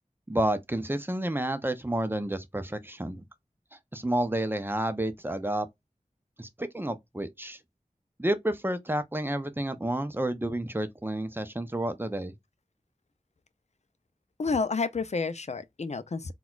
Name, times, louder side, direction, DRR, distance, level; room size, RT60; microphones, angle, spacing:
voice 1, 0.3-3.2 3.9-5.7 6.4-7.6 8.2-12.3, right 1 dB, 15° right, 0.6 m, -30 dB
voice 2, 14.4-16.3, left 4 dB, 50° left, 0.4 m, -30 dB
4.1 x 2.3 x 2.3 m
wide cardioid pair, 45°, 14 cm